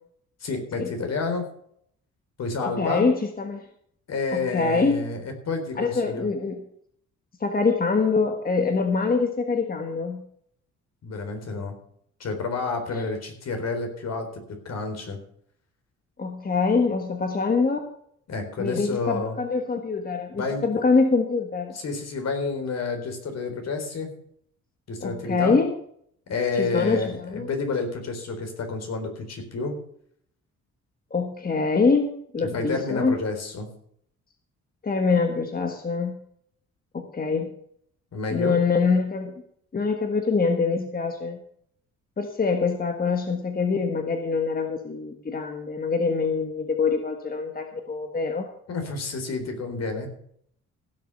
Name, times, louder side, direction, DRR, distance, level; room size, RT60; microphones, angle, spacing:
voice 1, 0.4-1.5 2.4-3.0 4.1-6.3 11.0-11.8 12.2-15.2 18.3-19.4 20.3-20.8 21.7-24.1 24.9-25.6 26.3-29.7 32.5-33.7 38.1-38.6 48.7-50.1, left 4 dB, 60° left, 5 dB, 3.8 m, -29 dB
voice 2, 2.6-3.7 4.3-5.1 5.8-6.6 7.4-10.2 12.9-13.0 16.2-17.8 18.6-21.8 25.0-25.7 26.5-27.5 31.1-33.2 34.8-36.2 36.9-37.5 38.3-39.3 39.7-41.4 42.2-48.5, left 4 dB, 30° left, 5 dB, 1.5 m, -24 dB
16.0 x 6.6 x 6.7 m, 0.67 s
cardioid pair, 90°, 30 cm